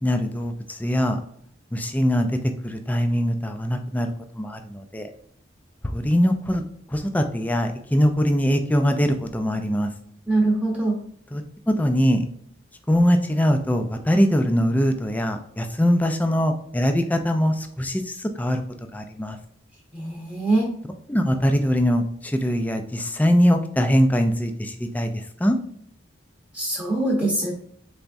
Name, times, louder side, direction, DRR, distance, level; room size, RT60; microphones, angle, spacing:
voice 1, 0.0-1.2 1.7-2.3 2.6-4.1 4.4-5.1 5.9-6.6 6.9-9.9 11.3-11.4 11.7-12.2 12.9-18.6 18.9-19.4 21.1-25.6, equal, 10° left, 5 dB, 0.3 m, -22 dB
voice 2, 10.3-10.9 19.9-20.7 26.5-27.5, right 2 dB, 5° right, -3 dB, 0.8 m, -23 dB
4.1 x 3.4 x 2.5 m, 0.65 s
head